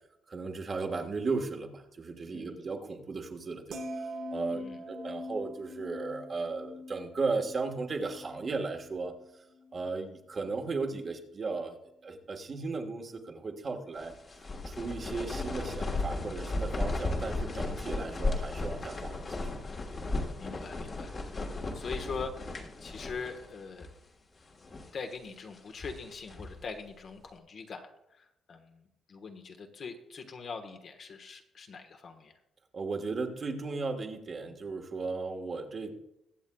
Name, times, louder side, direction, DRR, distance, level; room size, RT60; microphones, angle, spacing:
voice 1, 0.3-9.1 9.7-19.5 32.7-36.0, right 4 dB, 40° right, 3 dB, 1.4 m, -36 dB
sound 1, 3.7-10.0 10.3-10.7, left 1 dB, 70° right, 1.3 m, -43 dB
voice 2, 4.5-4.8 20.4-23.9 24.9-32.3, left 5 dB, 55° left, 5 dB, 1.2 m, -43 dB
sound 2, 14.0-23.5 23.8-23.9 24.5-25.0 25.5-26.6, left 2 dB, 40° left, 1.4 m, -35 dB
22.0 x 7.3 x 2.3 m, 0.85 s
cardioid pair, 90°, 0 cm